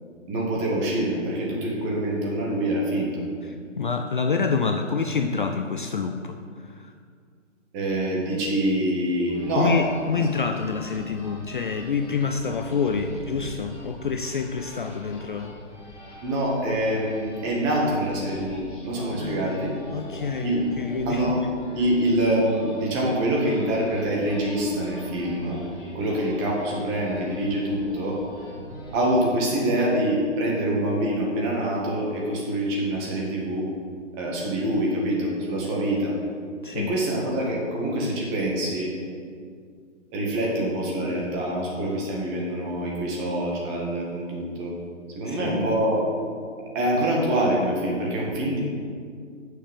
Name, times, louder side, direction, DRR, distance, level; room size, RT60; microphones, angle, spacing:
voice 1, 0.3-3.2 7.7-9.8 10.1-10.3 16.2-19.7 20.4-20.6 21.0-21.4 21.7-25.6 25.9-28.2 28.9-33.7 34.1-36.2 36.7-38.9 40.1-44.7 45.1-46.0 46.7-48.6, right 1 dB, 20° right, -3 dB, 1.7 m, -25 dB
voice 2, 3.5-6.4 6.7-6.8 9.6-15.5 19.2-21.2 36.6-36.9 45.3-45.7, left 5 dB, 45° left, 6 dB, 0.4 m, -27 dB
sound 1, 9.3-29.2, equal, 15° left, 2.2 m, -43 dB
6.7 x 6.0 x 7.5 m, 2.1 s
figure-of-eight pair, 140°, 38 cm